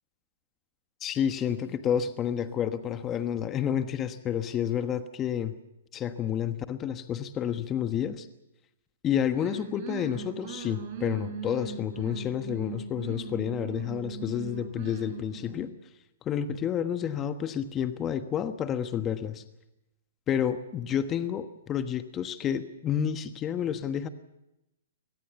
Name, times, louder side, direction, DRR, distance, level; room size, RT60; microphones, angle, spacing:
voice 1, 1.0-5.5 5.9-8.3 9.0-15.7 16.2-19.4 20.3-24.1, left 9 dB, 20° left, 10 dB, 1.3 m, -30 dB
sound 1, 9.3-15.7, right 7 dB, 45° right, 4.2 m, -40 dB
24.0 x 19.0 x 7.1 m, 0.91 s
hypercardioid pair, 135°, 0 cm